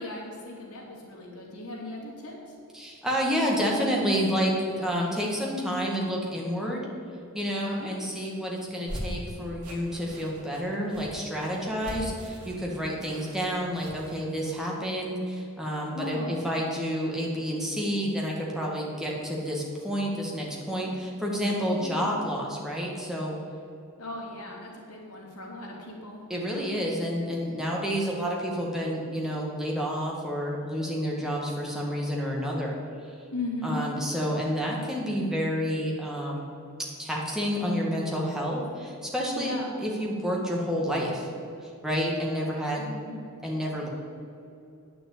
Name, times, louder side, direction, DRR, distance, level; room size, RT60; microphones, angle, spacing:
voice 1, 0.0-2.5 7.6-7.9 15.9-16.5 21.8-22.2 24.0-26.2 33.3-33.8 39.3-39.8 42.8-43.2, left 2 dB, 80° left, -2 dB, 2.8 m, -37 dB
voice 2, 2.7-4.5 4.8-6.8 7.3-23.4 26.3-32.8 33.0-33.1 33.6-36.4 37.0-41.3 41.6-42.9 43.4-43.9, equal, ahead, -3 dB, 1.9 m, -29 dB
sound 1, 8.7-14.2, equal, 85° right, 2.1 m, -41 dB
9.4 x 6.8 x 8.5 m, 2.6 s
head